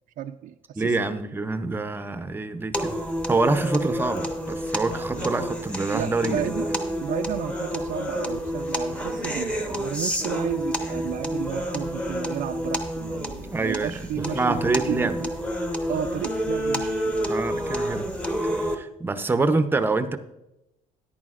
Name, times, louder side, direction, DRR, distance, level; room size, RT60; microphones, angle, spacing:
voice 1, 0.2-0.9 5.2-5.3 5.9-6.7 7.0-14.6 14.9-15.3 15.9-17.3, right 10 dB, 60° right, 6 dB, 0.4 m, -32 dB
voice 2, 0.8-3.0 3.3-6.8 13.4-15.2 17.3-18.1 18.4-20.2, right 3 dB, 15° right, 10 dB, 0.6 m, -26 dB
sound 1, 2.7-18.8, equal, 10° left, 0.9 m, -29 dB
13.5 x 10.5 x 2.5 m, 0.91 s
cardioid pair, 130°, 15 cm